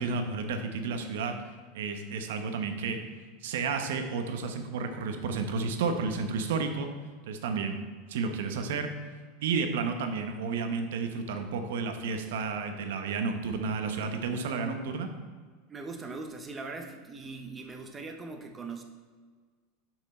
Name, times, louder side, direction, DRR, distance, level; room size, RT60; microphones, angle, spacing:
voice 1, 0.0-1.3 1.7-3.0 3.4-6.9 7.3-7.8 8.1-8.9 9.4-15.1, right 4 dB, 85° right, 6 dB, 0.9 m, -31 dB
voice 2, 15.7-18.8, right 3 dB, 15° right, 4 dB, 0.8 m, -40 dB
6.6 x 6.0 x 4.2 m, 1.5 s
supercardioid pair, 150°, 0 cm